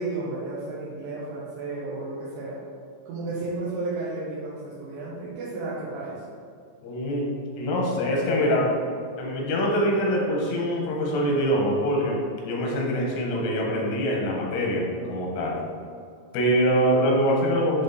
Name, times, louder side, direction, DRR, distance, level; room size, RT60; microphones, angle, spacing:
voice 1, 0.0-2.6 3.1-6.2, right 2 dB, 90° right, -8 dB, 3.5 m, -32 dB
voice 2, 6.8-7.3 7.6-8.7 9.2-12.2 12.4-15.6 16.3-17.8, equal, 85° left, -2 dB, 3.7 m, -24 dB
10.5 x 3.6 x 4.1 m, 2.3 s
omnidirectional pair, 5.3 m